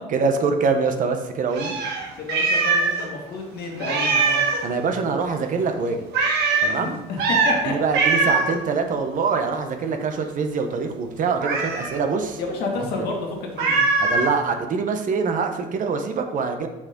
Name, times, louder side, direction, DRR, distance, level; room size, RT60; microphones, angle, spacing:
voice 1, 0.1-1.8 4.6-6.1 6.6-7.0 7.6-12.4 14.0-16.7, right 5 dB, 50° right, 5 dB, 1.0 m, -24 dB
Meow, 1.5-3.1 3.3-3.4 3.8-4.7 6.1-6.7 7.2-7.6 7.9-8.6 11.4-12.0 13.6-14.3, right 3 dB, 80° right, 1.5 m, -21 dB
voice 2, 2.2-4.4 6.8-7.7 12.4-13.8, left 3 dB, 70° left, 0 dB, 2.0 m, -30 dB
6.3 x 6.2 x 3.8 m, 1.0 s
cardioid pair, 110°, 17 cm